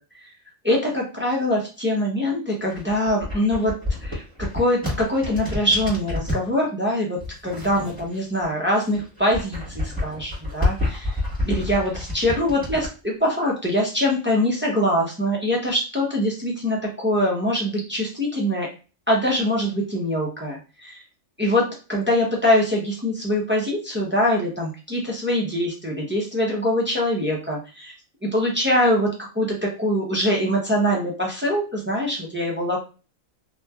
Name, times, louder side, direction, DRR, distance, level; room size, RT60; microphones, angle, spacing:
voice 1, 0.6-3.7 4.0-7.2 7.4-18.7 19.1-21.0 21.4-27.9 28.2-32.8, left 1 dB, 15° right, -2 dB, 0.4 m, -23 dB
sound 1, 2.6-6.5 7.2-8.5 8.8-12.9, left 2 dB, 5° left, 1.3 m, -29 dB
2.9 x 2.5 x 2.2 m, 0.33 s
omnidirectional pair, 1.4 m